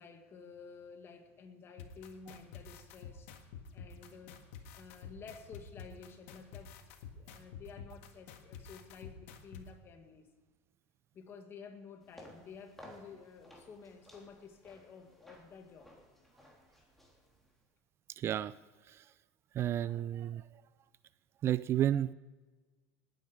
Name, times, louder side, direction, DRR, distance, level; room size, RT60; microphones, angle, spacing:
voice 1, 0.0-10.3 11.1-15.9, left 5 dB, 35° left, 6 dB, 2.0 m, -52 dB
sound 1, 1.8-9.6, left 7 dB, 80° left, 1.6 m, -49 dB
sound 2, 12.0-17.6, left 1 dB, 5° left, 3.4 m, -57 dB
voice 2, 18.2-18.5 18.9-19.0 19.5-20.4 21.4-22.1, right 11 dB, 40° right, 17 dB, 0.3 m, -31 dB
19.0 x 9.3 x 5.1 m, 1.3 s
supercardioid pair, 120°, 7 cm